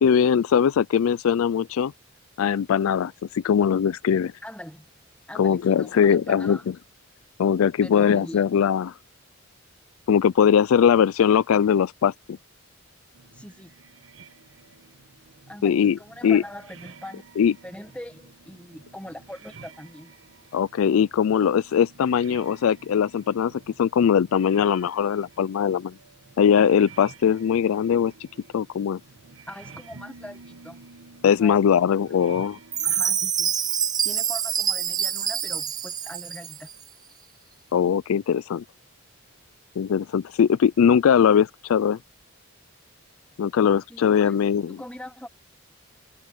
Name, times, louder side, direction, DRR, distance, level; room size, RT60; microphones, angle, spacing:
voice 1, 0.0-1.9 2.4-4.3 5.4-6.6 7.4-8.9 10.1-12.4 15.6-16.4 17.4-17.5 20.5-25.9 26.4-28.1 28.5-29.0 31.2-32.6 37.7-38.6 39.8-42.0 43.4-44.8, left 7 dB, 75° left, 0.3 m, -21 dB
voice 2, 4.4-4.8 5.3-6.6 7.8-8.5 13.3-13.7 15.5-17.3 17.6-20.1 29.5-30.8 31.2-31.8 32.8-33.5 34.0-36.7 43.9-44.4 44.7-45.3, left 1 dB, 5° left, 1.3 m, -41 dB
sound 1, 13.1-33.0, right 4 dB, 65° right, 1.1 m, -50 dB
Chime, 32.7-36.7, right 8 dB, 20° right, 0.3 m, -26 dB
open air
head